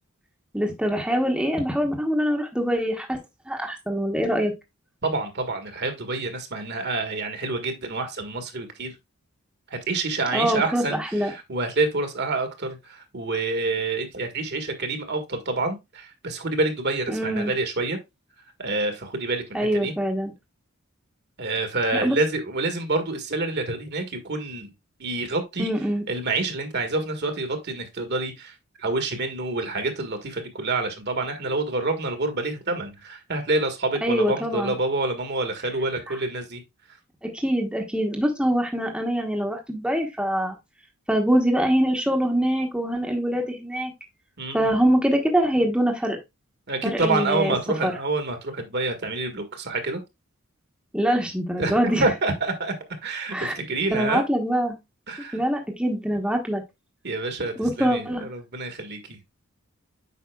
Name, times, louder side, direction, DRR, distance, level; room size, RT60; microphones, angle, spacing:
voice 1, 0.5-3.2 3.5-4.5 10.3-10.8 11.1-11.3 17.1-17.5 19.5-20.3 22.0-22.2 25.6-26.0 34.0-34.7 37.2-40.6 41.1-43.9 44.5-46.2 46.9-47.5 47.8-47.9 50.9-52.0 53.3-53.5 53.9-54.8 55.3-56.6 57.6-58.3, equal, 5° right, 1.0 m, -24 dB
voice 2, 5.0-9.0 9.7-18.0 18.4-19.9 21.4-24.7 25.0-25.7 26.1-36.6 36.9-37.0 44.4-44.7 46.7-50.0 51.6-52.7 53.0-54.2 55.1-55.4 57.0-59.2, right 2 dB, 50° right, 1.5 m, -27 dB
8.4 x 5.4 x 2.3 m
head